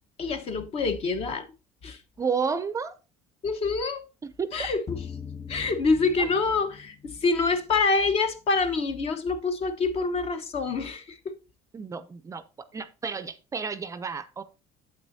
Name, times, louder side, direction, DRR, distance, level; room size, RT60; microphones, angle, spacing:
voice 1, 0.2-1.5 1.8-2.0 3.4-4.0 4.5-5.0 5.5-11.3, left 4 dB, 45° left, 1.1 m, -26 dB
voice 2, 2.2-3.0 4.2-4.7 6.2-6.3 11.7-14.4, right 5 dB, 20° right, 0.5 m, -31 dB
sound 1, 4.9-7.3, left 6 dB, 25° left, 0.6 m, -40 dB
8.7 x 8.0 x 2.7 m
cardioid pair, 125°, 14 cm